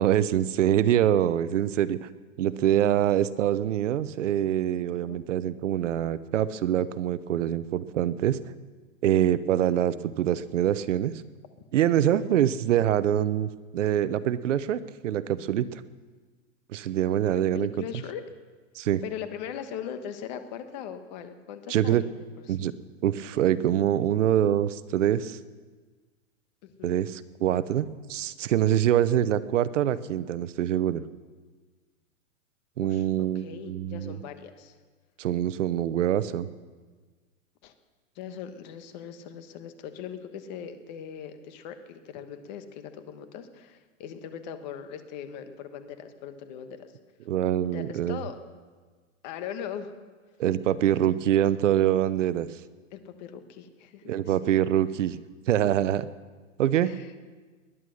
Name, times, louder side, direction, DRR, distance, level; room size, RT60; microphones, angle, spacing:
voice 1, 0.0-2.1 2.4-8.4 9.0-11.1 11.7-15.8 16.7-17.8 18.7-19.0 21.7-22.0 22.5-22.7 23.0-25.4 26.8-31.0 32.8-34.2 35.2-36.5 47.3-48.2 50.4-52.6 54.1-55.2 55.5-56.1 56.6-57.2, right 11 dB, 65° right, 16 dB, 0.8 m, -25 dB
voice 2, 17.3-18.2 19.0-22.7 26.6-27.0 32.8-34.8 37.6-37.7 38.1-46.8 47.7-48.4 49.2-49.9 50.9-51.4 52.9-54.3 56.8-57.1, left 8 dB, 35° left, 9 dB, 1.3 m, -40 dB
20.0 x 11.0 x 6.4 m, 1.4 s
hypercardioid pair, 160°, 40 cm